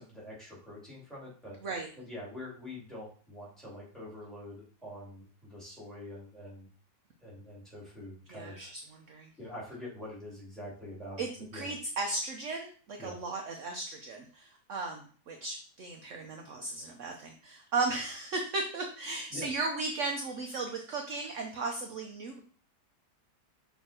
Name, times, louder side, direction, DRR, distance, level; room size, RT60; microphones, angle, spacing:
voice 1, 0.0-1.6 2.0-6.7 7.2-8.7 9.4-11.7 13.0-13.2 19.3-19.5, left 1 dB, ahead, -6 dB, 2.9 m, -45 dB
voice 2, 8.3-9.3 11.2-22.4, right 3 dB, 60° right, 3 dB, 1.0 m, -36 dB
6.5 x 3.4 x 4.3 m, 0.43 s
omnidirectional pair, 1.7 m